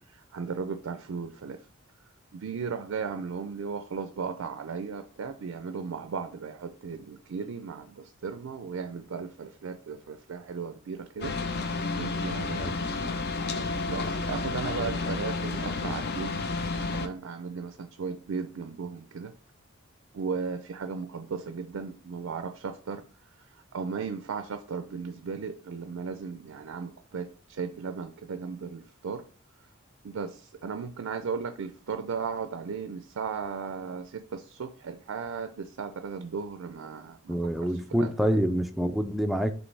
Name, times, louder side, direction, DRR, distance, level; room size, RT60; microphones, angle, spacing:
voice 1, 0.0-1.6 2.3-11.3 12.0-13.1 13.9-16.4 16.9-19.3 20.1-23.0 23.7-29.3 30.0-38.1, right 5 dB, 70° right, 0.4 m, -36 dB
sound 1, 11.2-17.1, left 3 dB, 50° left, 0.5 m, -31 dB
voice 2, 37.3-39.5, equal, ahead, 0.4 m, -27 dB
5.2 x 3.1 x 3.3 m
head